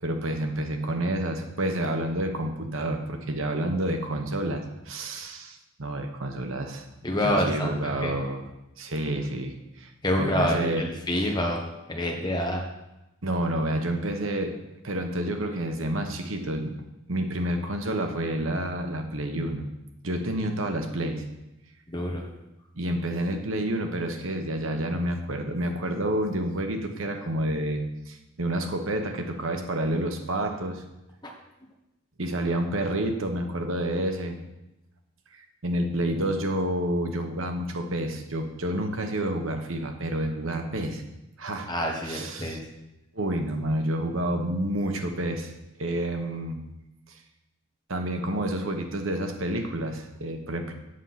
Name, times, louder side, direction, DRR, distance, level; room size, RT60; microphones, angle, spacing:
voice 1, 0.0-6.8 7.2-8.4 8.8-9.9 10.2-10.9 13.2-14.6 14.8-16.8 17.1-19.6 20.0-21.2 22.7-30.8 32.2-34.4 35.3-41.0 41.4-41.7 42.0-42.6 43.1-45.5 45.8-46.7 47.1-47.2 47.9-50.7, right 1 dB, 75° right, 5 dB, 1.2 m, -29 dB
voice 2, 7.0-8.1 10.0-11.6 11.9-12.6 21.9-22.2 41.7-42.6, left 1 dB, 20° left, 1 dB, 1.5 m, -27 dB
8.2 x 8.1 x 5.9 m, 0.95 s
head